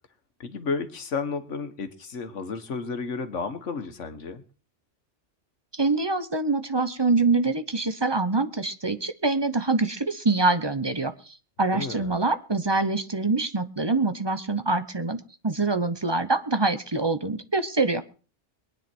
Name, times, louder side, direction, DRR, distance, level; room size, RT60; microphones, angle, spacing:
voice 1, 0.4-4.4 11.7-12.2, left 4 dB, 85° left, 10 dB, 1.7 m, -32 dB
voice 2, 5.7-11.1 11.6-18.0, right 3 dB, 25° right, 10 dB, 0.9 m, -25 dB
22.5 x 9.9 x 4.5 m, 0.37 s
omnidirectional pair, 1.2 m